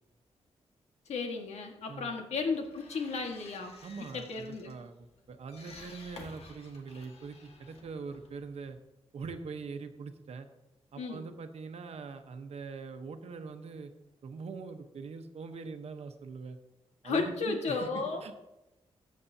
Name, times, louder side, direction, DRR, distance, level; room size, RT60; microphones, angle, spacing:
voice 1, 1.1-3.7 4.1-4.7 11.0-11.3 17.0-18.2, left 4 dB, 85° left, 3 dB, 1.7 m, -34 dB
sound 1, 2.4-8.8, left 3 dB, 65° left, 1.7 m, -53 dB
voice 2, 3.8-8.8 9.1-10.5 10.9-13.9 14.2-16.6 17.0-18.4, right 4 dB, 70° right, 7 dB, 1.1 m, -43 dB
14.5 x 8.5 x 2.8 m, 0.93 s
wide cardioid pair, 120°, 11 cm